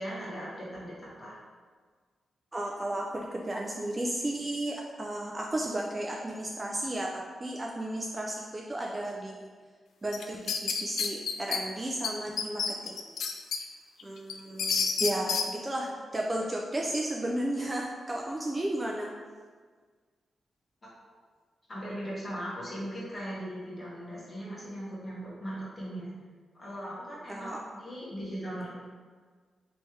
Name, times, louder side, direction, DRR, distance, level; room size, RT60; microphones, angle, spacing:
voice 1, 0.0-1.4 21.7-26.1 26.6-28.8, equal, 30° left, -7 dB, 1.4 m, -39 dB
voice 2, 2.5-9.5 10.0-13.0 14.0-19.1 27.3-27.6, right 1 dB, 20° right, -1 dB, 0.3 m, -33 dB
sound 1, 10.1-11.6 12.0-12.1 12.4-13.6 14.0-15.5, left 5 dB, 85° left, 0.3 m, -29 dB
3.2 x 3.1 x 4.5 m, 1.5 s
wide cardioid pair, 145°, 0 cm